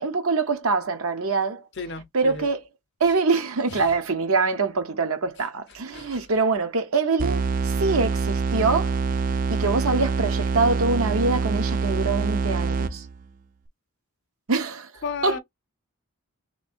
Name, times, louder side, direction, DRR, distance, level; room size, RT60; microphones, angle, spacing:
voice 1, 0.0-1.6 2.1-2.6 3.0-9.0 9.5-13.1 14.5-14.9 15.2-15.4, right 4 dB, 70° right, 0.8 m, -24 dB
voice 2, 1.8-2.5 3.7-3.8 5.9-6.2 15.0-15.4, left 4 dB, 50° left, 0.6 m, -33 dB
sound 1, 7.2-13.2, right 4 dB, 40° right, 0.4 m, -25 dB
3.1 x 3.1 x 4.3 m
head